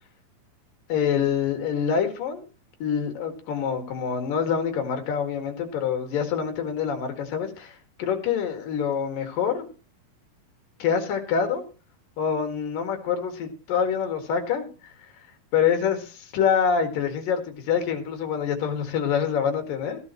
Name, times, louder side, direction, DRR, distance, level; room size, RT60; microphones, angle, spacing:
voice 1, 0.9-2.4 2.8-9.7 10.8-11.7 12.2-14.7 15.5-20.0, left 7 dB, 70° left, 6 dB, 3.6 m, -26 dB
15.0 x 11.5 x 3.0 m, 0.36 s
omnidirectional pair, 4.1 m